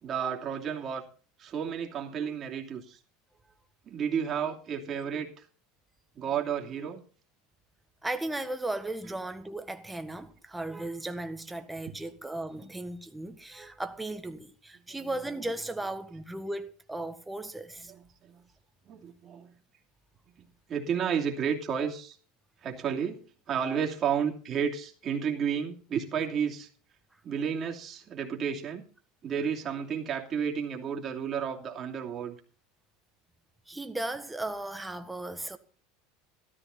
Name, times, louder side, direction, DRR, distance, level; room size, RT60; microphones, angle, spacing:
voice 1, 0.0-1.1 1.4-3.0 3.9-5.5 6.1-7.0 9.1-9.2 11.9-12.0 14.9-15.5 17.8-18.4 18.8-19.5 20.4-22.2 22.6-26.7 27.2-28.8 29.2-32.4, right 7 dB, 40° right, 2.8 m, -32 dB
voice 2, 8.0-17.9 33.7-35.6, right 2 dB, 10° right, 1.6 m, -36 dB
13.5 x 13.0 x 4.1 m
hypercardioid pair, 90°, 0 cm